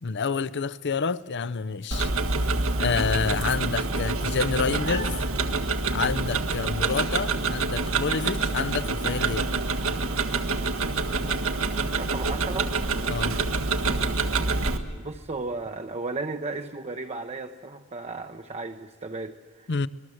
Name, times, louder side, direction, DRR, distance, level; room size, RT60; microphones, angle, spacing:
voice 1, 0.0-2.1 2.8-5.1 5.9-9.5 13.1-13.3 19.7-19.9, left 5 dB, 55° left, 0.7 m, -28 dB
Tick-tock, 1.9-14.8, right 3 dB, 80° right, 1.6 m, -26 dB
voice 2, 12.0-12.8 14.9-19.7, right 3 dB, 30° right, 0.8 m, -34 dB
25.5 x 20.5 x 7.8 m
head